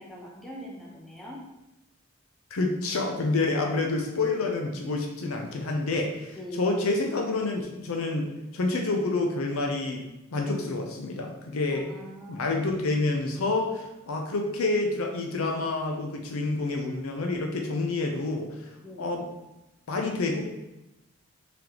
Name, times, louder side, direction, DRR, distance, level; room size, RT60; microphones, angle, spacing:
voice 1, 0.0-1.4 6.4-6.7 11.7-12.6 18.8-19.1, equal, ahead, -4 dB, 0.7 m, -42 dB
voice 2, 2.5-10.0 10.3-11.9 12.3-18.5 19.0-19.3 19.9-20.4, left 3 dB, 70° left, 2 dB, 0.5 m, -28 dB
3.7 x 3.4 x 2.9 m, 0.98 s
head